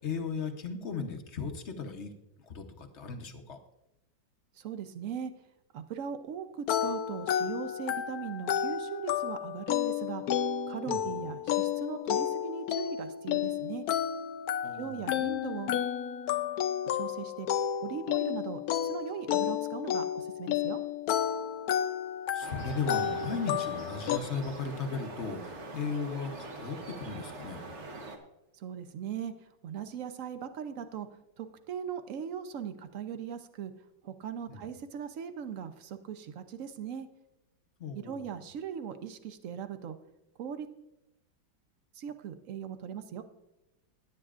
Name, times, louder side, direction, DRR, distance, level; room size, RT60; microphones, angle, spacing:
voice 1, 0.0-2.1 2.5-3.6 10.9-11.0 14.6-15.2 22.3-27.6 34.5-34.7 37.8-38.3, left 5 dB, 50° left, 4 dB, 0.9 m, -36 dB
voice 2, 4.5-5.3 5.7-10.2 10.7-13.8 14.7-15.8 16.9-17.5 17.8-20.8 28.5-31.1 31.4-33.7 34.0-37.1 37.9-40.0 40.4-40.7 41.9-43.2, right 8 dB, 70° right, 9 dB, 0.7 m, -39 dB
sound 1, 6.7-24.2, left 10 dB, 80° left, 0.8 m, -31 dB
sound 2, 22.4-28.2, right 2 dB, 40° right, 1.2 m, -43 dB
17.0 x 9.5 x 2.5 m, 0.90 s
omnidirectional pair, 2.2 m